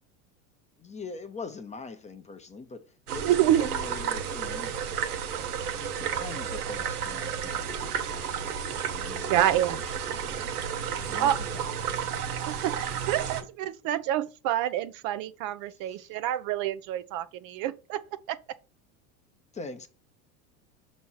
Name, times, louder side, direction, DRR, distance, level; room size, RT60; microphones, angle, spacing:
voice 1, 0.8-4.7 5.5-8.4 8.9-10.5 11.0-12.6 15.7-16.2 19.5-19.9, left 4 dB, 15° left, 0.7 m, -43 dB
sound 1, 3.1-13.4, right 7 dB, 90° right, 1.1 m, -32 dB
voice 2, 3.2-3.7 9.3-9.8 11.2-11.4 12.5-18.0 18.3-18.4, right 12 dB, 50° right, 0.5 m, -27 dB
6.1 x 3.1 x 5.5 m
hypercardioid pair, 100°, 44 cm